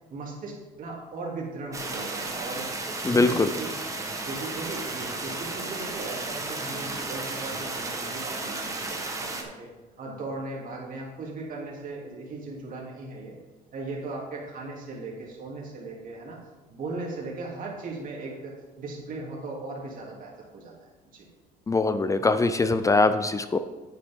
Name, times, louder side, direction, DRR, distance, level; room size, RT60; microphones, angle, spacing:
voice 1, 0.1-2.7 3.1-3.7 4.2-9.7 10.0-13.3 13.7-16.4 16.7-20.7 21.1-21.3, right 3 dB, 50° right, -3 dB, 3.0 m, -37 dB
sound 1, 1.7-9.4, right 3 dB, 20° right, 1.3 m, -33 dB
voice 2, 3.0-3.5 21.7-23.6, left 3 dB, 20° left, 11 dB, 0.4 m, -22 dB
9.1 x 9.0 x 3.7 m, 1.2 s
cardioid pair, 110°, 17 cm